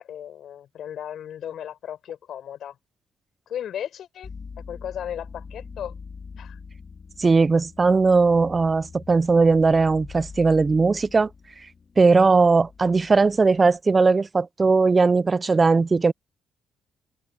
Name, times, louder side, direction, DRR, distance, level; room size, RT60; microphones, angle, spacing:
voice 1, 0.0-2.8 3.5-4.3 4.7-5.9 6.4-6.6, left 10 dB, 65° left, 5.6 m, -35 dB
sound 1, 4.2-13.8, left 5 dB, 40° left, 2.6 m, -43 dB
voice 2, 7.2-11.3 12.0-16.1, right 4 dB, 30° right, 0.5 m, -19 dB
supercardioid pair, 60°, 0 cm